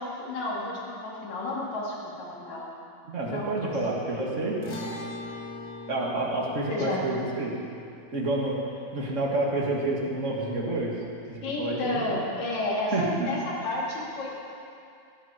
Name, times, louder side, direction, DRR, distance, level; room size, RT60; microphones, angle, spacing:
voice 1, 0.0-2.7 3.3-3.7 6.7-7.1 11.4-14.3, left 2 dB, 70° left, -4 dB, 3.9 m, -31 dB
voice 2, 3.1-4.6 5.9-7.5 8.1-8.6 8.9-10.9 11.3-12.2 12.9-13.3, right 2 dB, 30° right, -3 dB, 2.0 m, -29 dB
sound 1, 4.6-11.1, left 2 dB, 30° left, 2.0 m, -42 dB
17.0 x 14.5 x 4.5 m, 2.5 s
omnidirectional pair, 3.3 m